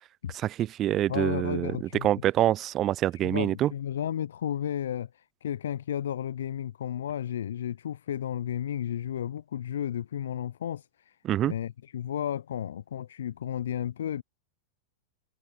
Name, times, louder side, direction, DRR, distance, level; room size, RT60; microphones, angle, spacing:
voice 1, 0.4-1.8 2.0-3.7 11.2-11.5, right 12 dB, 35° right, 0.4 m, -26 dB
voice 2, 1.1-2.1 3.2-11.2 11.4-14.2, left 10 dB, 70° left, 0.4 m, -33 dB
figure-of-eight pair, 95°, 0 cm